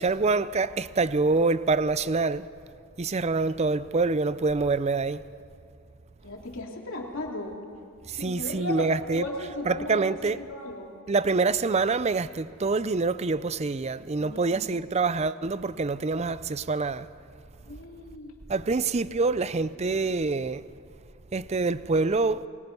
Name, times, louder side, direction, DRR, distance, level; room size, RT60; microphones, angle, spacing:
voice 1, 0.0-2.4 3.0-5.2 8.2-9.3 9.7-10.4 11.1-17.0 18.5-20.6 21.3-22.4, right 3 dB, 30° right, 0.5 m, -26 dB
voice 2, 6.2-7.5 8.1-10.9 14.2-14.7 17.6-18.4, left 2 dB, 60° left, 3.4 m, -36 dB
29.5 x 21.5 x 5.5 m
head